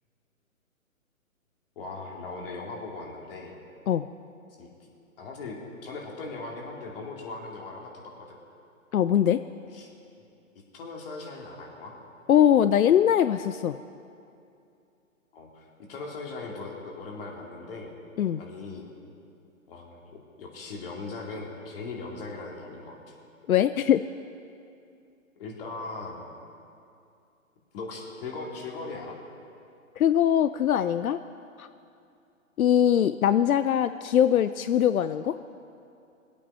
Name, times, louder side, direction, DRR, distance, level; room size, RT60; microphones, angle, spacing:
voice 1, 1.8-3.6 4.6-4.7 5.2-8.4 9.7-9.9 10.7-11.9 15.3-18.0 18.4-18.9 19.7-23.1 25.4-26.2 27.7-29.2, left 3 dB, 40° left, -1 dB, 2.6 m, -39 dB
voice 2, 8.9-9.4 12.3-13.8 18.2-18.4 23.5-24.0 30.0-31.2 31.6-31.7 32.6-35.4, left 10 dB, 85° left, 12 dB, 0.5 m, -22 dB
21.5 x 8.6 x 5.5 m, 2.6 s
hypercardioid pair, 145°, 41 cm